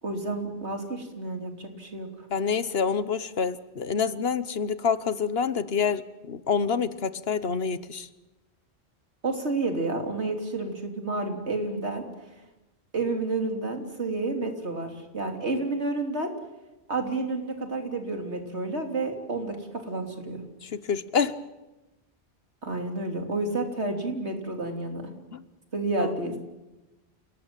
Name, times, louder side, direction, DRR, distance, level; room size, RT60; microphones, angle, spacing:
voice 1, 0.0-2.3 9.2-12.0 12.9-16.3 16.9-19.6 19.8-20.4 22.6-25.0 25.7-26.4, right 2 dB, 80° right, 4 dB, 3.6 m, -30 dB
voice 2, 2.3-8.1 20.6-21.3 25.3-25.4 26.0-26.2, left 6 dB, 65° left, 14 dB, 1.3 m, -27 dB
28.0 x 18.5 x 9.0 m, 1.0 s
omnidirectional pair, 1.1 m